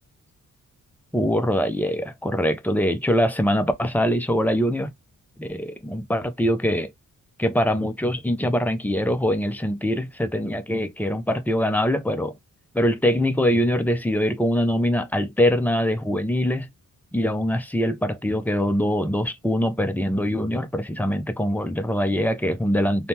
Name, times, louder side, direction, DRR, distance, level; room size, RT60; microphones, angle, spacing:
voice 1, 1.1-4.9 5.4-6.9 7.4-12.3 12.7-16.7 17.1-23.1, equal, 5° left, 0.4 m, -23 dB
3.3 x 2.1 x 2.7 m
wide cardioid pair, 135°, 34 cm